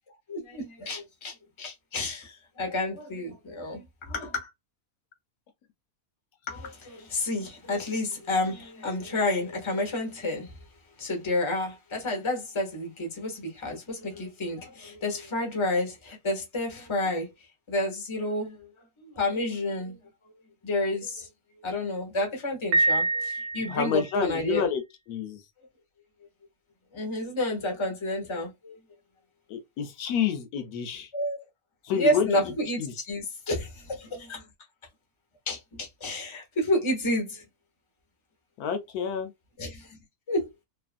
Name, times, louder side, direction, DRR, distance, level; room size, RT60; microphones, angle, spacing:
voice 1, 0.3-4.5 6.5-10.6 11.0-17.3 17.7-20.0 20.6-21.3 21.6-24.7 26.9-28.8 31.1-31.4 31.9-34.4 35.5-37.4 39.6-40.0 40.3-40.5, left 1 dB, 25° left, 0.8 m, -30 dB
Piano, 22.7-24.2, right 2 dB, 85° right, 1.2 m, -26 dB
voice 2, 23.7-24.8 25.1-25.4 29.5-31.1 31.9-32.3 32.8-32.9 38.6-39.3, left 7 dB, 80° left, 1.1 m, -28 dB
2.8 x 2.5 x 2.4 m
omnidirectional pair, 1.6 m